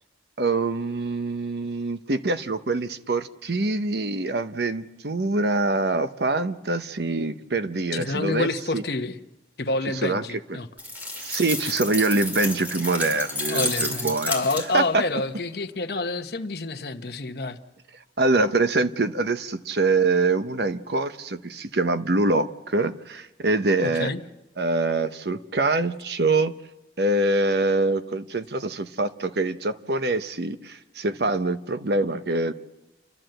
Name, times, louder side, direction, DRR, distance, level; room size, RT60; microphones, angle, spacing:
voice 1, 0.4-8.5 8.7-8.8 10.0-10.2 10.5-10.6 11.2-14.3 14.7-15.0 18.2-24.1 24.6-26.5 27.0-32.5, right 2 dB, 65° right, 11 dB, 0.9 m, -24 dB
voice 2, 7.9-9.2 9.6-10.7 13.4-17.6 23.8-24.2, left 2 dB, 60° left, 7 dB, 1.0 m, -28 dB
sound 1, 10.8-15.0, left 1 dB, 10° right, 2.5 m, -31 dB
29.5 x 12.0 x 7.8 m, 1.0 s
head